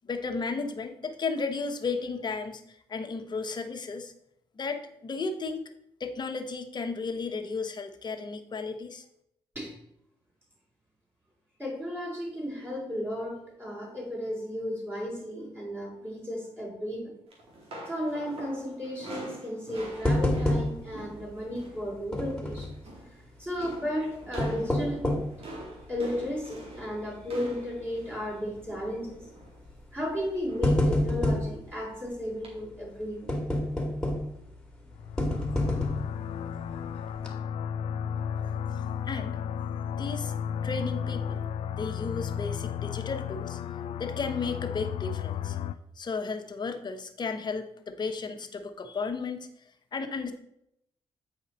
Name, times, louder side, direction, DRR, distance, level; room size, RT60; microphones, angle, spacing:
voice 1, 0.0-4.1 4.6-5.6 6.0-9.0 39.0-39.4 40.0-40.3 40.6-41.5 41.8-45.6 46.0-49.5 49.9-50.3, left 4 dB, 45° left, 7 dB, 1.0 m, -34 dB
voice 2, 11.6-17.1 17.9-22.7 23.4-25.2 25.9-29.3 29.9-33.3 36.5-36.6, equal, 20° right, -4 dB, 3.2 m, -34 dB
sound 1, 17.3-21.9 22.1-22.4 22.7-23.2 23.6-29.6 30.5-30.9 31.2-31.4 32.4-32.5, right 1 dB, 70° right, 2.3 m, -45 dB
sound 2, 20.1-21.0 21.3-21.4 22.1-22.8 24.2-25.4 26.0-26.1 26.7-26.9 27.2-27.3 28.5-28.8 29.7-29.8 30.3-31.5 33.3-34.4 35.2-36.2 36.7-36.8 37.2-37.3, left 1 dB, 5° left, 2.0 m, -27 dB
sound 3, 34.9-45.7, left 8 dB, 75° left, 0.4 m, -33 dB
8.6 x 4.8 x 4.2 m, 0.76 s
cardioid pair, 70°, 10 cm